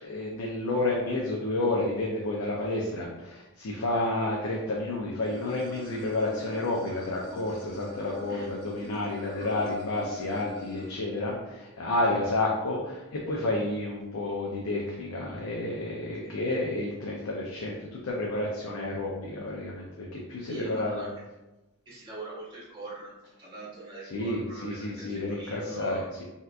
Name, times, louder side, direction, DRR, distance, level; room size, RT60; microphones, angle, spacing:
voice 1, 0.0-21.1 24.1-25.9, left 2 dB, 70° left, -2 dB, 0.5 m, -30 dB
Water / Sink (filling or washing), 5.2-10.9, equal, 45° right, 1.2 m, -45 dB
voice 2, 20.5-21.1 21.8-23.1 23.4-26.1, right 2 dB, 25° right, -6 dB, 1.4 m, -41 dB
3.3 x 2.8 x 2.4 m, 1.0 s
head